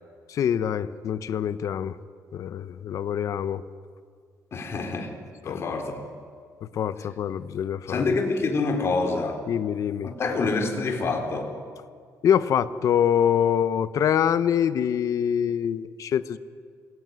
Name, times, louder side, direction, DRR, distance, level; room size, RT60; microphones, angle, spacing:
voice 1, 0.3-2.0 2.3-3.6 5.4-5.7 6.7-8.1 9.5-10.1 12.2-16.4, left 9 dB, 60° left, 14 dB, 1.1 m, -25 dB
voice 2, 4.5-5.1 5.4-6.0 7.9-9.4 10.0-11.5, left 3 dB, 45° left, 4 dB, 4.2 m, -26 dB
27.5 x 20.5 x 9.6 m, 2.1 s
cardioid pair, 125°, 6 cm